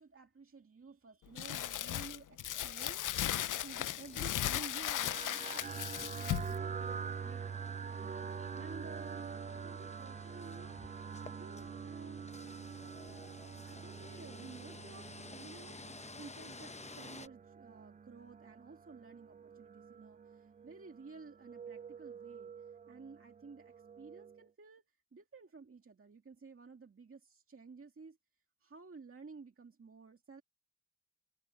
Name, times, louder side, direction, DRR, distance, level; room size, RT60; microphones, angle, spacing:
voice 1, 0.0-9.3 9.6-12.3 13.7-22.5 22.9-24.8 25.1-28.2 28.6-30.4, right 4 dB, 45° right, 2.2 m, -54 dB
Crumpling crinkling, 1.4-6.6, left 12 dB, 70° left, 0.5 m, -37 dB
sound 1, 3.8-17.3, left 3 dB, 20° left, 0.8 m, -53 dB
sound 2, 4.7-24.4, right 6 dB, 25° right, 0.3 m, -46 dB
wide cardioid pair, 80°, 32 cm